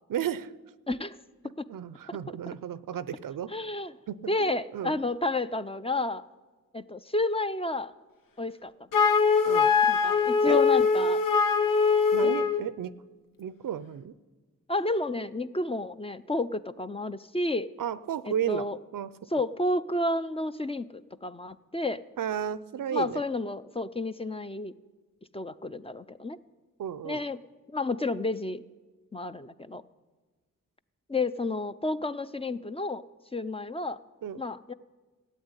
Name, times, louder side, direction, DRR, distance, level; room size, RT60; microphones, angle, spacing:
voice 1, 0.1-0.5 1.7-3.5 4.1-5.0 9.4-9.7 10.5-10.6 12.1-12.9 13.4-14.1 17.8-18.7 18.9-19.1 22.2-23.2 26.8-27.2 34.2-34.4, right 9 dB, 80° right, 17 dB, 0.6 m, -33 dB
voice 2, 3.5-3.9 4.3-6.2 6.7-7.9 8.4-8.9 9.9-11.2 12.2-12.3 14.7-17.7 18.2-18.8 19.3-22.0 22.9-24.7 25.3-26.4 27.0-27.4 27.7-28.6 29.1-29.8 31.1-33.0 33.3-34.0 34.4-34.7, left 2 dB, 20° left, 12 dB, 0.5 m, -31 dB
Wind instrument woodwind instrument, 8.9-12.6, left 5 dB, 90° left, 0.9 m, -22 dB
14.5 x 8.3 x 9.6 m, 1.3 s
cardioid pair, 60°, 32 cm